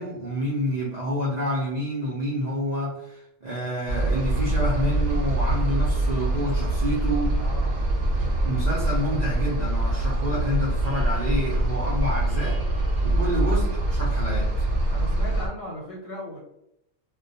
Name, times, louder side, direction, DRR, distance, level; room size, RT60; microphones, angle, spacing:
voice 1, 0.0-7.4 8.4-12.6 13.0-14.7, equal, 80° right, -4 dB, 0.3 m, -28 dB
sound 1, 3.9-15.5, right 1 dB, 60° right, 0.8 m, -24 dB
voice 2, 7.4-7.8 11.5-11.6 13.1-13.4 14.9-16.4, left 1 dB, 90° left, -3 dB, 1.1 m, -37 dB
2.2 x 2.1 x 2.6 m, 0.83 s
omnidirectional pair, 1.4 m